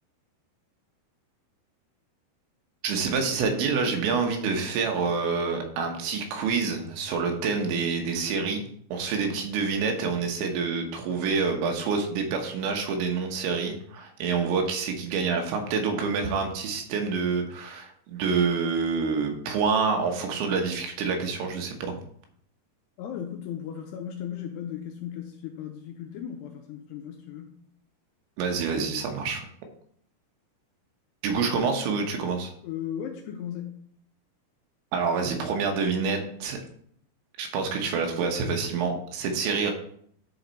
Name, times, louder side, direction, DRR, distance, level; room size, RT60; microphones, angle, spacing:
voice 1, 2.8-8.6 8.9-21.9 28.4-29.4 31.2-32.5 34.9-36.6 37.4-39.7, right 5 dB, 80° right, 3 dB, 3.4 m, -27 dB
voice 2, 23.0-27.5 31.9-32.0 32.6-33.8, left 9 dB, 85° left, 4 dB, 2.5 m, -36 dB
10.5 x 4.3 x 4.0 m, 0.64 s
omnidirectional pair, 5.3 m